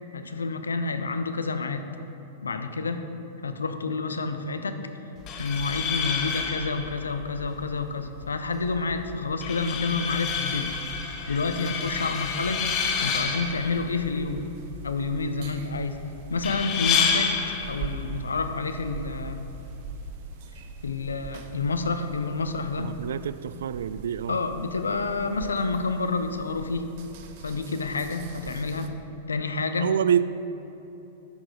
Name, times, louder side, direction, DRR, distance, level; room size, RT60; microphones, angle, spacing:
voice 1, 0.1-1.9 2.4-3.1 3.4-4.8 5.4-10.7 11.3-12.7 13.0-14.5 14.8-16.0 16.3-19.5 20.8-22.9 24.3-27.0 27.4-28.9 29.3-30.0, left 4 dB, 80° left, 8 dB, 0.6 m, -29 dB
sound 1, 5.2-20.2, left 6 dB, 35° left, 1.1 m, -30 dB
sound 2, 12.6-28.9, right 6 dB, 50° right, 0.8 m, -43 dB
voice 2, 22.8-24.4 29.8-30.2, right 9 dB, 70° right, 15 dB, 0.3 m, -26 dB
10.5 x 6.2 x 5.0 m, 2.9 s
figure-of-eight pair, 100°, 0 cm